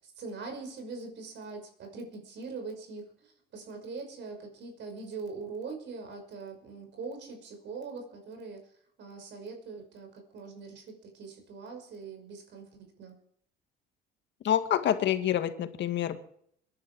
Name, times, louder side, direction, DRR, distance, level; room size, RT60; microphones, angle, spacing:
voice 1, 0.0-8.6 9.0-13.2, right 4 dB, 60° right, 5 dB, 5.8 m, -42 dB
voice 2, 14.4-16.2, left 10 dB, 60° left, 9 dB, 1.9 m, -27 dB
22.0 x 11.0 x 4.8 m, 0.67 s
supercardioid pair, 75°, 21 cm